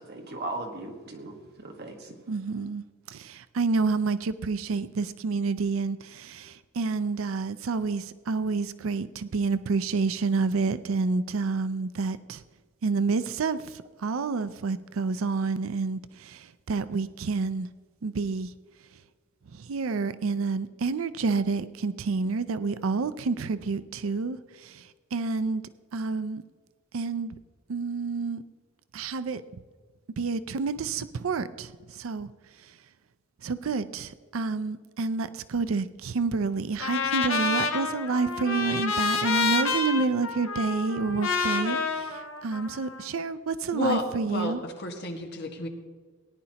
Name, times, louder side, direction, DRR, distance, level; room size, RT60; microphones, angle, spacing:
voice 1, 0.0-2.1, right 2 dB, 55° right, 3 dB, 1.5 m, -38 dB
voice 2, 2.3-12.4 12.8-17.7 18.0-18.5 19.5-25.6 25.9-26.4 26.9-27.4 27.7-28.4 28.9-29.4 30.2-32.3 33.4-44.6, right 4 dB, 85° right, 13 dB, 0.5 m, -29 dB
Trumpet, 36.8-43.0, left 4 dB, 75° left, 1.2 m, -28 dB
voice 3, 43.7-45.7, left 1 dB, 55° left, 2 dB, 1.6 m, -31 dB
18.5 x 10.5 x 2.9 m, 1.5 s
head